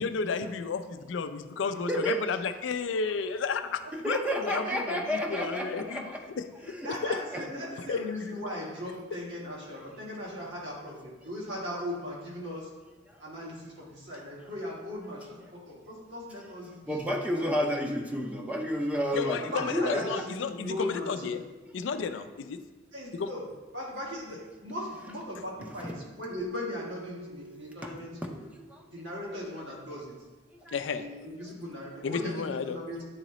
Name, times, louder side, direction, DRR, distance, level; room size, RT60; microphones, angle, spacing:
voice 1, 0.0-6.1 6.4-7.2 7.9-8.0 19.1-21.4 21.7-22.6 23.1-23.3 30.7-31.1 32.0-32.8, left 5 dB, 85° left, 10 dB, 0.4 m, -32 dB
voice 2, 1.9-2.3 4.0-6.2 6.7-6.9 7.3-7.6 16.9-20.2 27.8-27.9 28.2-28.9 30.6-30.7, equal, 5° right, 1 dB, 0.5 m, -31 dB
voice 3, 4.6-5.0 6.0-6.1 6.8-12.7 13.2-17.0 17.4-17.5 19.4-21.4 22.9-23.5 23.7-28.4 28.8-30.2 30.9-33.0, left 1 dB, 75° right, -5 dB, 1.8 m, -38 dB
Keyboard (musical), 26.3-29.1, equal, 55° right, 0.9 m, -47 dB
9.0 x 3.8 x 3.1 m, 1.2 s
head